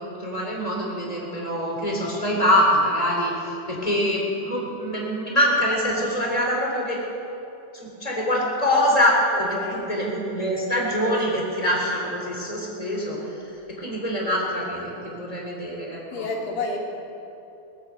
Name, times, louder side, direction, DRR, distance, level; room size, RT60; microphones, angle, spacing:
voice 1, 0.0-7.0 7.7-13.2 13.8-16.3, equal, 10° left, -3 dB, 2.7 m, -24 dB
voice 2, 9.3-9.9 11.2-11.4 16.1-16.8, left 3 dB, 75° left, -1 dB, 3.8 m, -31 dB
21.5 x 8.6 x 7.8 m, 2.9 s
omnidirectional pair, 4.2 m